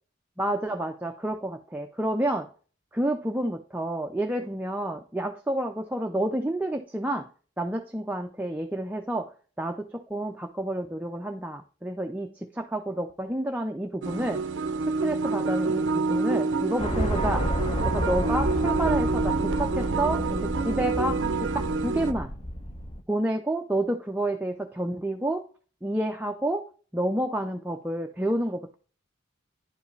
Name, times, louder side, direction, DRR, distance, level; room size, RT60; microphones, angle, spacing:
voice 1, 0.4-2.5 2.9-7.3 7.6-9.3 9.6-14.4 14.9-17.5 17.8-22.3 23.1-25.5 25.8-26.7 26.9-28.8, right 1 dB, 10° right, 4 dB, 0.4 m, -29 dB
sound 1, 14.0-22.1, right 4 dB, 70° right, 0.5 m, -27 dB
sound 2, 16.8-23.0, equal, 30° left, 0.8 m, -30 dB
10.0 x 4.8 x 3.2 m, 0.40 s
head